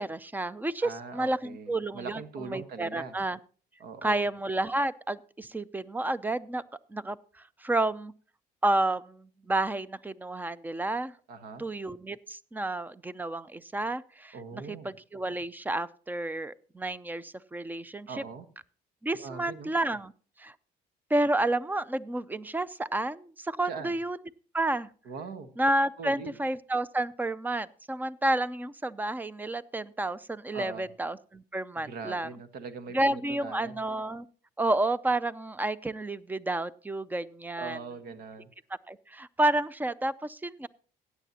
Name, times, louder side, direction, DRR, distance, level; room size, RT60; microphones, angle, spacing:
voice 1, 0.0-2.2 2.5-3.4 4.0-6.6 6.9-7.2 7.6-8.1 8.6-11.1 11.6-18.2 19.0-20.1 20.4-20.5 21.1-24.2 24.5-24.9 25.6-32.3 32.9-34.2 34.6-37.8 38.9-40.7, right 2 dB, 10° right, 18 dB, 0.4 m, -30 dB
voice 2, 0.8-3.2 3.8-4.3 11.3-11.6 14.3-14.9 18.1-18.5 19.2-19.7 23.6-24.0 25.0-25.5 26.0-26.4 30.5-30.9 31.7-33.8 37.6-38.5, right 5 dB, 75° right, 9 dB, 1.4 m, -41 dB
16.0 x 9.1 x 2.8 m, 0.40 s
cardioid pair, 110°, 17 cm